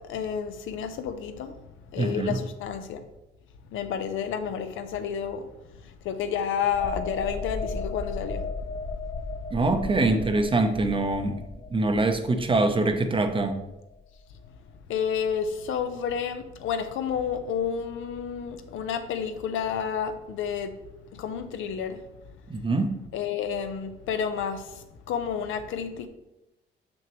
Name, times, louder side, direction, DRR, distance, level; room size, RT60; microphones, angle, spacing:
voice 1, 0.0-1.6 1.9-3.0 3.7-5.5 5.8-8.5 9.3-9.4 14.9-20.8 21.1-22.0 23.1-26.1, left 7 dB, 80° left, 8 dB, 0.7 m, -30 dB
voice 2, 2.0-2.4 9.5-11.4 11.7-13.6 22.5-22.9, right 2 dB, 25° right, 7 dB, 0.7 m, -24 dB
sound 1, 6.7-14.2 14.5-14.7, left 3 dB, 50° left, 0.9 m, -36 dB
6.2 x 6.1 x 3.0 m, 0.92 s
cardioid pair, 90°, 20 cm